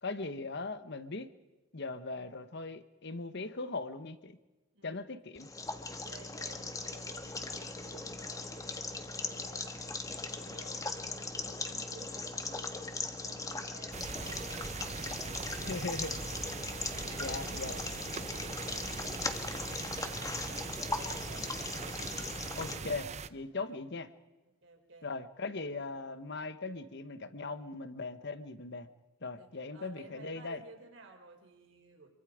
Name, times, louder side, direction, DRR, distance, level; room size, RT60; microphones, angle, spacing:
voice 1, 0.0-1.3 1.7-4.4 4.8-5.5 15.6-16.1 17.2-17.9 22.5-24.1 25.0-28.9 29.2-30.6, left 3 dB, 55° left, 12 dB, 1.2 m, -39 dB
voice 2, 4.7-5.1 5.8-16.3 16.8-21.5 23.6-23.8 24.6-25.1 29.2-32.1, right 2 dB, 60° right, 3 dB, 4.1 m, -55 dB
sound 1, 5.4-22.8, left 3 dB, 15° left, 1.4 m, -39 dB
sound 2, 13.9-23.3, right 5 dB, 30° right, 0.6 m, -41 dB
26.5 x 24.0 x 5.0 m, 1.1 s
head